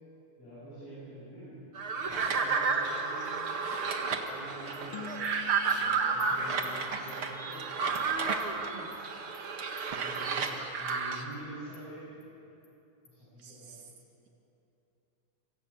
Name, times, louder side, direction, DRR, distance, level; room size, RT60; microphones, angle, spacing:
voice 1, 0.4-3.6 4.3-5.1 5.6-7.7 10.0-12.2 13.1-13.8, right 1 dB, 50° left, -9 dB, 9.1 m, -47 dB
sound 1, 1.7-11.2, right 5 dB, 50° right, 2.3 m, -31 dB
Animal, 4.3-4.4 4.7-4.8 5.2-5.3 5.7-5.8 6.2-6.3 6.6-6.7 7.1-7.2 7.5-7.6 7.9-8.1 8.4-8.5 8.9-9.0 9.3-9.4 9.8-9.9 10.1-10.6 10.9-11.0 11.3-11.4 11.7-11.8 12.2-12.3 12.6-12.7 13.1-13.2, left 6 dB, 85° left, 4.8 m, -54 dB
sound 2, 4.9-7.6, left 5 dB, 70° left, 1.3 m, -48 dB
voice 2, 13.4-13.9, right 7 dB, 80° right, 2 dB, 4.1 m, -51 dB
27.0 x 24.0 x 8.6 m, 2.9 s
omnidirectional pair, 3.7 m